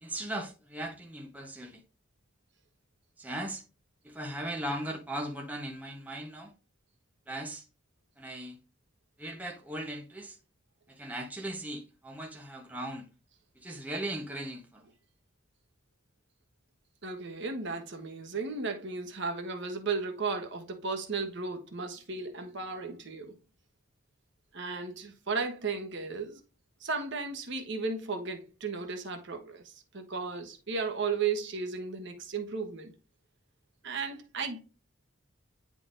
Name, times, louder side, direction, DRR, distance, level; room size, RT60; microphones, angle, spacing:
voice 1, 0.0-1.8 3.2-3.6 4.0-6.5 7.3-7.6 8.2-8.6 9.2-10.4 10.9-13.1 13.5-14.9, right 1 dB, 10° right, 0.9 m, -38 dB
voice 2, 17.0-23.3 24.5-26.4 26.8-32.9 33.8-34.6, right 4 dB, 60° right, 1.2 m, -35 dB
9.6 x 3.9 x 2.5 m
head